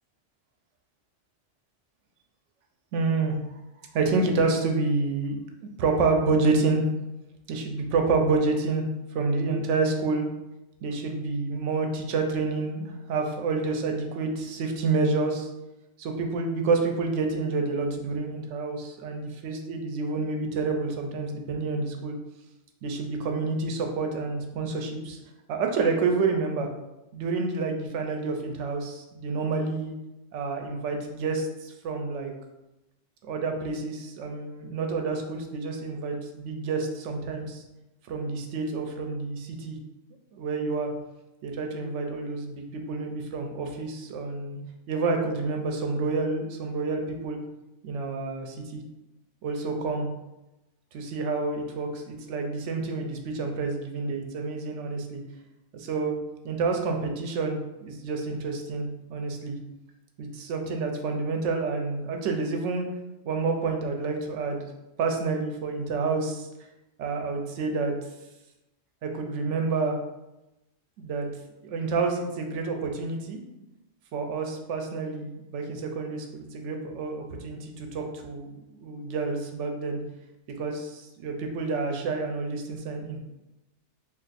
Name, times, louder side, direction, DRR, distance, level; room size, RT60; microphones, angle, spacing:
voice 1, 2.9-3.4 3.9-6.8 7.5-8.9 9.1-10.2 10.8-15.5 16.0-22.2 22.8-25.2 25.5-26.7 27.1-29.9 30.3-32.3 33.2-37.6 38.1-39.8 40.3-40.9 41.4-44.6 44.9-47.4 47.8-48.8 49.4-50.1 50.9-55.2 55.7-56.2 56.4-59.6 60.2-62.9 63.3-64.7 65.0-66.5 67.0-67.9 69.0-70.0 71.0-71.3 71.6-73.4 74.1-78.5 78.8-80.0 80.6-83.2, right 4 dB, 85° right, 3 dB, 0.9 m, -28 dB
2.5 x 2.4 x 3.9 m, 0.96 s
omnidirectional pair, 1.2 m